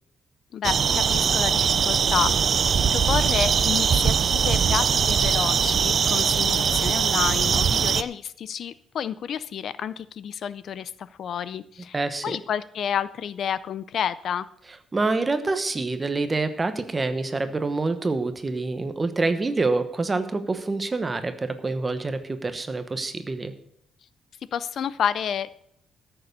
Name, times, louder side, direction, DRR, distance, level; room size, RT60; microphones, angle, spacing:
voice 1, 0.5-14.5 24.5-25.6, left 8 dB, 55° left, 17 dB, 0.4 m, -30 dB
sound 1, 0.6-8.0, right 7 dB, 40° right, 0.4 m, -21 dB
voice 2, 11.9-12.4 14.9-23.5, right 3 dB, 20° right, 9 dB, 1.0 m, -26 dB
13.5 x 6.9 x 6.7 m, 0.71 s
cardioid pair, 160°, 0 cm